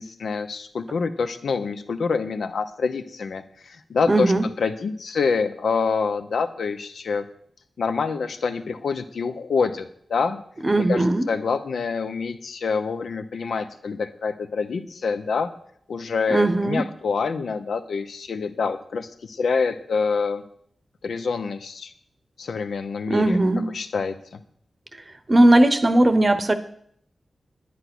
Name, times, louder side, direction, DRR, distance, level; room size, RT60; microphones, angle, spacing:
voice 1, 0.0-7.2 7.8-10.4 10.8-15.5 15.9-20.4 21.0-21.9 22.4-23.4 23.7-24.4, left 5 dB, 85° left, 9 dB, 0.9 m, -26 dB
voice 2, 4.1-4.4 10.6-11.3 16.3-16.8 23.1-23.7 25.3-26.5, right 1 dB, 25° right, 11 dB, 0.8 m, -18 dB
10.5 x 9.6 x 6.1 m, 0.66 s
wide cardioid pair, 175°, 0 cm